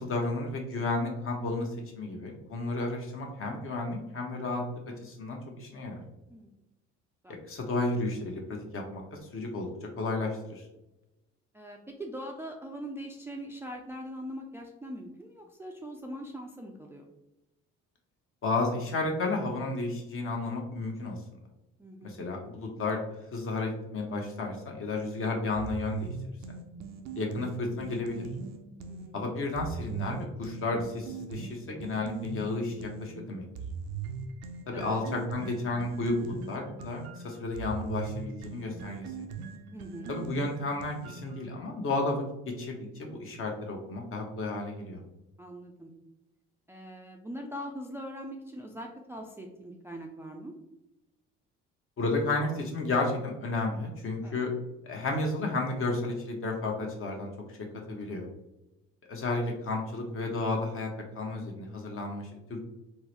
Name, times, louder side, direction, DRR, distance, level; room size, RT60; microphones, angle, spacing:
voice 1, 0.0-1.7 1.9-4.6 5.0-6.0 7.5-10.6 18.4-21.2 22.0-23.0 23.3-26.1 26.5-26.6 27.2-28.3 29.1-33.5 34.7-39.0 40.1-42.2 42.6-45.0 52.0-54.5 54.8-57.6 57.9-58.2 59.1-60.9 61.1-62.6, left 2 dB, 45° left, 1 dB, 0.9 m, -32 dB
voice 2, 11.5-17.0 21.8-22.3 28.9-29.1 34.7-34.9 39.7-40.1 45.4-45.9 46.7-50.5 54.2-54.4, equal, 10° right, 0 dB, 0.3 m, -42 dB
sound 1, 25.6-29.1 29.6-33.1 33.6-41.4, right 6 dB, 85° right, 0.5 m, -40 dB
3.7 x 2.1 x 3.0 m, 0.94 s
supercardioid pair, 75°, 29 cm